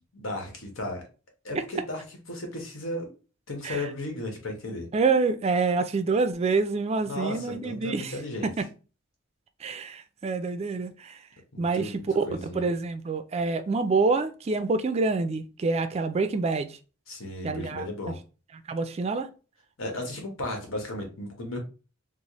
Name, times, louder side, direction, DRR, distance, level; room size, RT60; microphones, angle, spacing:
voice 1, 0.1-1.0 1.4-3.1 3.5-4.9 7.1-8.5 11.5-12.7 17.1-18.2 19.8-21.6, left 1 dB, 85° left, 1.0 m, -35 dB
voice 2, 4.9-8.1 8.4-8.7 9.6-11.2 11.6-16.8 17.4-17.9 18.7-19.3, right 4 dB, 30° right, 0.3 m, -27 dB
4.1 x 2.0 x 3.0 m
head